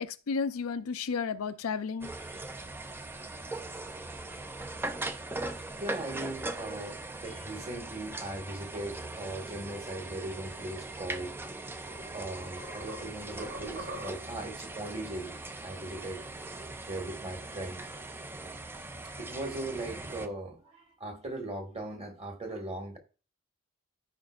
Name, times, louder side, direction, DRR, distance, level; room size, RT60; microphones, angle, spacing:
voice 1, 0.0-2.1, left 5 dB, 90° left, 0.5 m, -32 dB
sound 1, 2.0-20.3, right 2 dB, 10° right, 0.4 m, -40 dB
voice 2, 5.6-11.3 12.1-15.4 15.6-16.2 16.9-17.8 19.0-23.0, right 2 dB, 30° right, 1.6 m, -39 dB
sound 2, 11.3-11.4 11.9-14.5, right 1 dB, 45° right, 2.3 m, -43 dB
14.0 x 5.1 x 2.4 m
head